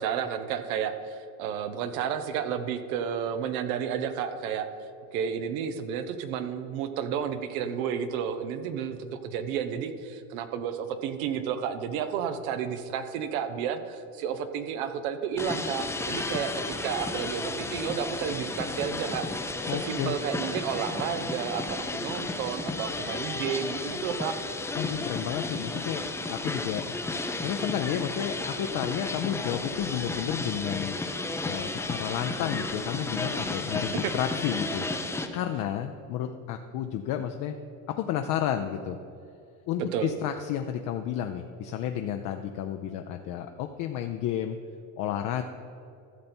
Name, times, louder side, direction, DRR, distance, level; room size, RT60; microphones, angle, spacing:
voice 1, 0.0-4.7 5.1-24.4 34.0-34.1 39.8-40.1, right 8 dB, 90° right, 9 dB, 1.0 m, -32 dB
sound 1, 15.4-35.3, left 2 dB, 5° left, 0.5 m, -33 dB
voice 2, 19.7-20.1 24.7-26.9 27.4-31.0 31.4-34.8 35.3-37.5 37.9-39.0 39.7-44.6 45.0-45.4, left 10 dB, 50° left, 6 dB, 0.6 m, -31 dB
14.0 x 6.7 x 4.4 m, 2.6 s
cardioid pair, 140°, 41 cm